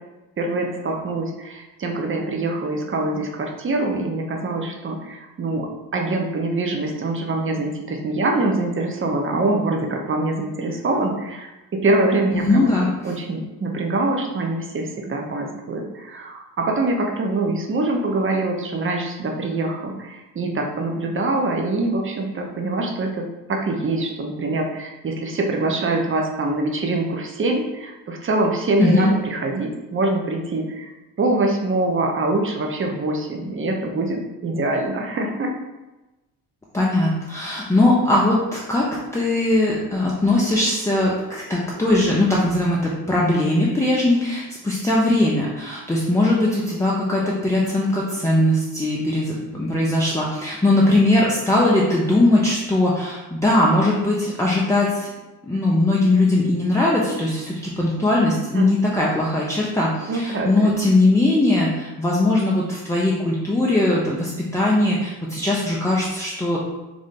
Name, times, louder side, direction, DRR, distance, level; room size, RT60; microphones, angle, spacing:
voice 1, 0.4-12.7 13.0-30.9 31.2-35.5 58.5-58.7 60.1-60.7, right 2 dB, 25° right, 2 dB, 0.8 m, -24 dB
voice 2, 12.3-12.9 28.8-29.1 36.7-38.9 39.1-55.1 55.4-66.6, left 2 dB, 5° left, -5 dB, 0.7 m, -20 dB
3.7 x 3.4 x 3.7 m, 1.1 s
figure-of-eight pair, 45°, 48 cm